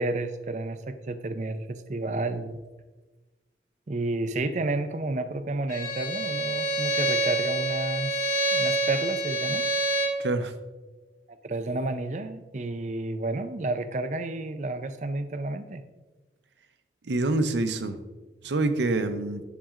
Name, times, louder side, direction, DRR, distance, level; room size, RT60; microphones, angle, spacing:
voice 1, 0.0-2.6 3.9-9.7 11.4-15.8, right 2 dB, 40° right, 9 dB, 0.4 m, -31 dB
Bowed string instrument, 5.7-10.2, right 1 dB, 45° left, 1.2 m, -27 dB
voice 2, 10.2-10.5 17.1-18.0 18.4-19.4, right 2 dB, 85° right, 9 dB, 0.6 m, -26 dB
10.0 x 7.5 x 2.4 m, 1.2 s
head